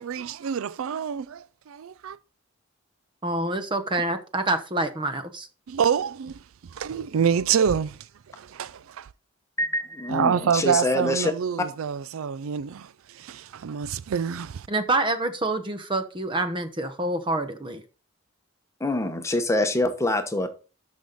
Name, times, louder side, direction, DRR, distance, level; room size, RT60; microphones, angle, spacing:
voice 1, 0.0-2.2 5.7-6.4 6.7-8.0 8.4-9.1 10.1-14.7, right 7 dB, 70° right, 0.4 m, -27 dB
voice 2, 3.2-5.5 14.7-17.8, right 2 dB, 20° right, 1.0 m, -27 dB
voice 3, 9.6-11.3 18.8-20.5, left 1 dB, 15° left, 1.0 m, -25 dB
12.5 x 5.3 x 4.1 m
head